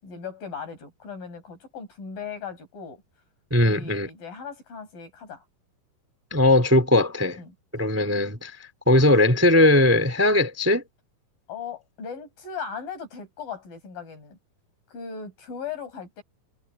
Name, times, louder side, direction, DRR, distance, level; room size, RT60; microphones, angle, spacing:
voice 1, 0.0-3.0 3.6-5.4 7.4-7.5 11.5-14.4 14.9-16.2, left 6 dB, 65° left, 7.9 m, -38 dB
voice 2, 3.5-4.1 6.3-7.4 7.7-8.5 8.9-10.8, left 1 dB, 5° right, 2.4 m, -19 dB
omnidirectional pair, 4.4 m